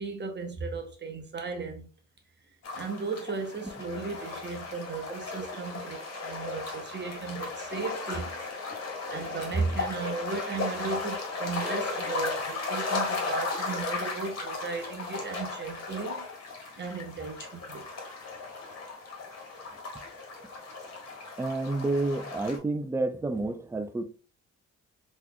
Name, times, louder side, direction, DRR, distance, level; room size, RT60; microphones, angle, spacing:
voice 1, 0.0-1.9 2.7-8.4 9.1-16.3 16.8-17.8, right 4 dB, 35° right, 0.9 m, -35 dB
sound 1, 2.6-22.6, left 3 dB, 55° left, 1.5 m, -36 dB
voice 2, 21.4-24.0, right 2 dB, 10° right, 0.4 m, -29 dB
3.8 x 3.0 x 2.2 m
cardioid pair, 90°, 30 cm